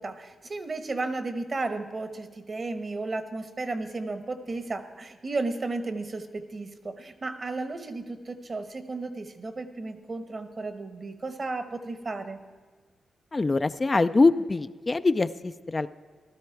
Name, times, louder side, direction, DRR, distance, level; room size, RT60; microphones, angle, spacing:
voice 1, 0.0-12.4, right 3 dB, 40° right, 9 dB, 1.1 m, -34 dB
voice 2, 13.3-15.9, left 3 dB, 30° left, 11 dB, 0.4 m, -23 dB
15.0 x 12.5 x 4.7 m, 1.4 s
cardioid pair, 70°, 0 cm